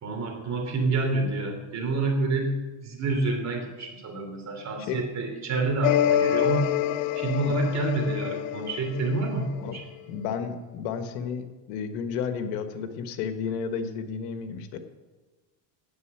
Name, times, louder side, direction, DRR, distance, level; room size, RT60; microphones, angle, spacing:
voice 1, 0.0-2.5 2.8-6.7 7.1-9.8, right 2 dB, 35° right, 3 dB, 3.1 m, -28 dB
sound 1, 5.8-9.7, left 11 dB, 50° left, 0.5 m, -26 dB
voice 2, 10.1-14.8, left 6 dB, 80° left, 8 dB, 1.4 m, -32 dB
9.6 x 8.2 x 8.2 m, 1.2 s
supercardioid pair, 115°, 48 cm